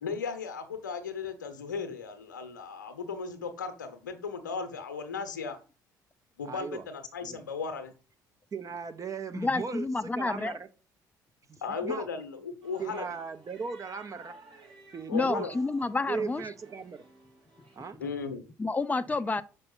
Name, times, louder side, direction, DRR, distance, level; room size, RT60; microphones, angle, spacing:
voice 1, 0.0-5.6 6.4-7.9 11.6-13.0 15.1-15.5 18.0-18.5, left 5 dB, 85° left, 0.9 m, -36 dB
voice 2, 6.4-6.8 7.2-7.4 8.5-10.7 11.5-12.1 12.8-14.3 14.9-15.5 16.1-17.0 17.7-18.0, right 5 dB, 35° right, 0.9 m, -37 dB
voice 3, 9.3-10.6 15.1-16.4 18.6-19.4, left 3 dB, 15° left, 0.6 m, -29 dB
sound 1, 12.6-17.9, right 3 dB, 55° right, 3.5 m, -54 dB
6.8 x 5.6 x 3.9 m
figure-of-eight pair, 55°, 10 cm